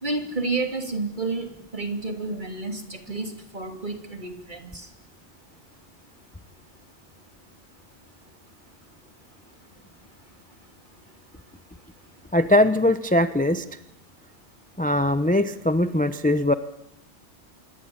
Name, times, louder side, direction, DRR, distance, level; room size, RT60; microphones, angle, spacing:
voice 1, 0.0-4.9, right 3 dB, 40° right, 5 dB, 3.1 m, -30 dB
voice 2, 12.3-13.6 14.8-16.5, left 1 dB, 5° left, 11 dB, 0.9 m, -21 dB
27.0 x 22.0 x 8.8 m, 0.78 s
omnidirectional pair, 1.3 m